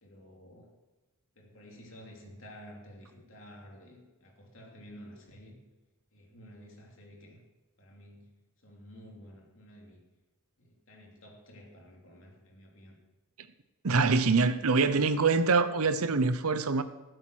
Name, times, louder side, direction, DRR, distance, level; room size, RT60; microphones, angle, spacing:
voice 1, 0.0-0.7 1.3-5.6 6.1-7.4 7.8-8.3 8.6-10.0 10.6-13.0, equal, 60° left, 3.0 m, -51 dB
voice 2, 13.8-16.8, right 4 dB, 80° right, 0.8 m, -25 dB
15.5 x 7.9 x 6.3 m
head